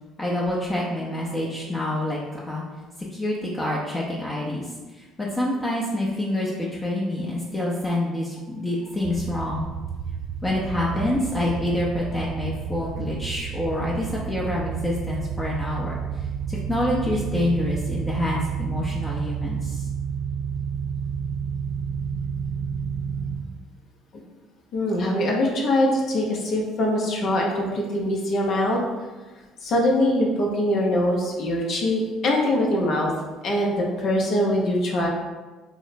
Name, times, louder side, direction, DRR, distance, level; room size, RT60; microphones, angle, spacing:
voice 1, 0.2-2.2 2.5-2.6 3.1-9.7 10.4-15.9 16.5-19.8, left 1 dB, 20° left, -5 dB, 0.7 m, -27 dB
sound 1, 9.0-23.4, right 7 dB, 20° right, 0.8 m, -30 dB
voice 2, 24.7-28.8 29.6-33.1 33.4-35.1, left 1 dB, 60° left, -1 dB, 0.6 m, -23 dB
3.0 x 2.1 x 4.0 m, 1.2 s
hypercardioid pair, 70°, 0 cm